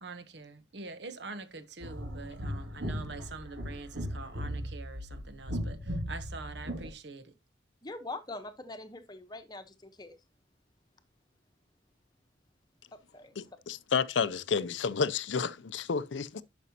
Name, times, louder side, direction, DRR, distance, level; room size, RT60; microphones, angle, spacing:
voice 1, 0.0-7.3, right 3 dB, 65° right, 1.0 m, -45 dB
sound 1, 1.8-6.9, equal, 85° right, 2.3 m, -37 dB
voice 2, 7.8-10.2 12.9-13.3, left 2 dB, 20° left, 1.0 m, -43 dB
voice 3, 13.4-16.4, left 5 dB, 75° left, 0.5 m, -31 dB
11.0 x 6.1 x 2.8 m
head